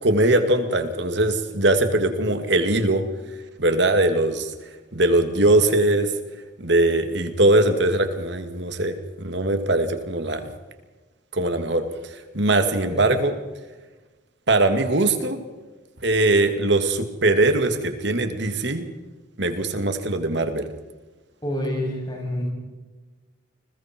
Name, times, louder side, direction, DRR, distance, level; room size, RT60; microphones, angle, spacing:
voice 1, 0.0-3.0 3.6-4.5 4.9-6.1 6.6-10.5 11.3-13.4 14.5-15.4 16.0-18.9 19.4-20.7, right 2 dB, 65° right, 7 dB, 2.4 m, -21 dB
voice 2, 21.4-22.5, equal, 25° left, -1 dB, 7.6 m, -28 dB
29.5 x 21.5 x 4.6 m, 1.2 s
head